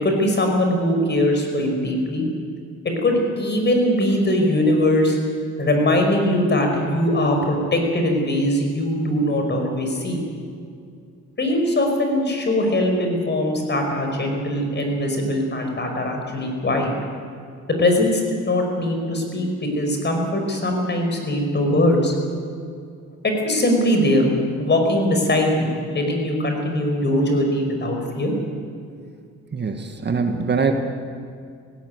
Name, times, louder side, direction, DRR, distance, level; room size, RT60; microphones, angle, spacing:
voice 1, 0.0-2.3 2.8-5.2 5.6-10.2 11.4-16.9 17.7-22.1 23.2-24.3 24.6-28.3 30.2-30.3, left 1 dB, 35° left, 3 dB, 5.5 m, -21 dB
voice 2, 29.5-30.7, right 5 dB, 35° right, 5 dB, 1.7 m, -23 dB
17.0 x 17.0 x 9.6 m, 2.3 s
cardioid pair, 90°, 30 cm